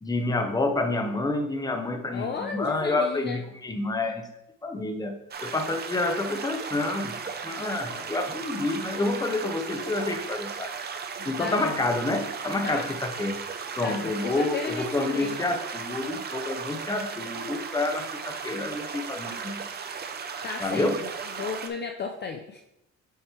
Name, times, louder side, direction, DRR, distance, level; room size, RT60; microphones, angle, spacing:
voice 1, 0.0-4.3 4.6-7.2 7.4-10.7 11.3-13.4 13.8-19.7 20.6-21.0, left 2 dB, 15° left, 5 dB, 0.8 m, -28 dB
voice 2, 2.1-3.4 7.6-8.1 11.2-11.8 12.6-12.9 13.8-15.5 20.4-21.1 21.4-22.6, left 5 dB, 35° left, 5 dB, 0.5 m, -34 dB
sound 1, 5.3-21.7, right 6 dB, 35° right, 0.7 m, -36 dB
8.1 x 3.2 x 4.4 m, 0.86 s
cardioid pair, 125°, 29 cm